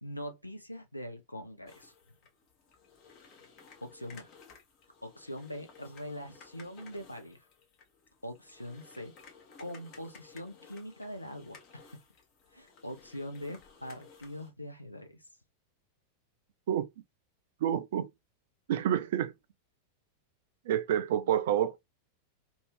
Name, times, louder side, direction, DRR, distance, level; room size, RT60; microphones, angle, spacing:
voice 1, 0.0-1.9 3.8-4.3 5.0-7.4 8.2-9.1 9.6-12.0 12.5-15.2, left 1 dB, 85° left, 0.5 m, -43 dB
sound 1, 1.7-14.5, left 5 dB, 40° left, 0.8 m, -57 dB
voice 2, 17.6-18.1 18.7-19.3 20.7-21.8, right 10 dB, 55° right, 0.3 m, -28 dB
2.6 x 2.4 x 3.2 m
figure-of-eight pair, 90°, 0 cm